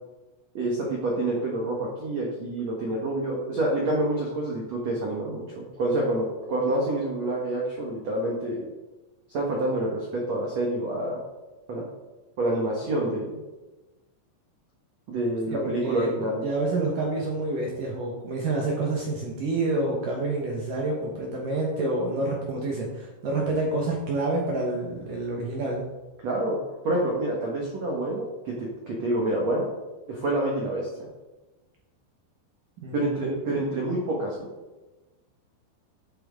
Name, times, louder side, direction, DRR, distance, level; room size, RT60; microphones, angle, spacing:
voice 1, 0.5-8.7 9.3-11.2 11.7-11.8 12.4-13.4 15.1-16.4 26.2-26.6 26.8-29.7 30.1-31.1 32.9-34.5, right 1 dB, 85° right, -2 dB, 1.5 m, -27 dB
voice 2, 15.6-16.1 16.4-25.8 32.8-33.4, right 2 dB, 70° right, -2 dB, 2.1 m, -28 dB
11.5 x 7.9 x 3.7 m, 1.1 s
omnidirectional pair, 5.6 m